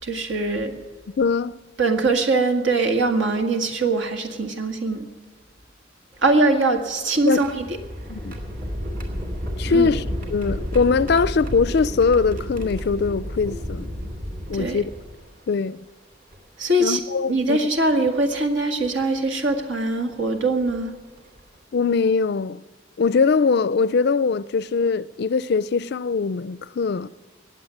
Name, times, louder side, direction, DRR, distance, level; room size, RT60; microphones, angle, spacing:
voice 1, 0.0-0.7 1.8-5.1 6.2-7.7 9.6-9.9 14.5-14.8 16.6-17.0 17.3-21.0, right 2 dB, 75° right, 1.9 m, -22 dB
voice 2, 1.2-1.6 7.2-7.5 8.1-8.4 9.6-10.0 10.3-13.9 14.5-14.9 15.5-15.8 16.8-17.6 21.7-22.6 23.0-27.1, left 5 dB, 55° left, 0.4 m, -21 dB
sound 1, 6.1-15.4 16.3-16.4 17.9-18.1 18.8-19.0 20.6-20.7 21.2-21.4, equal, 45° right, 2.7 m, -32 dB
19.5 x 7.7 x 9.3 m
head